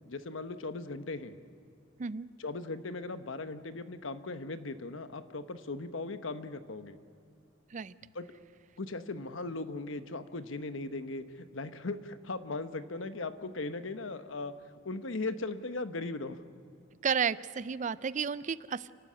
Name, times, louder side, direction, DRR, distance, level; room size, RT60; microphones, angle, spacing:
voice 1, 0.0-1.4 2.4-7.0 8.0-8.3 8.8-14.5 14.8-16.4, left 3 dB, 75° left, 11 dB, 1.0 m, -38 dB
voice 2, 17.0-18.9, right 6 dB, 40° right, 18 dB, 0.4 m, -32 dB
29.0 x 12.5 x 8.6 m, 2.3 s
head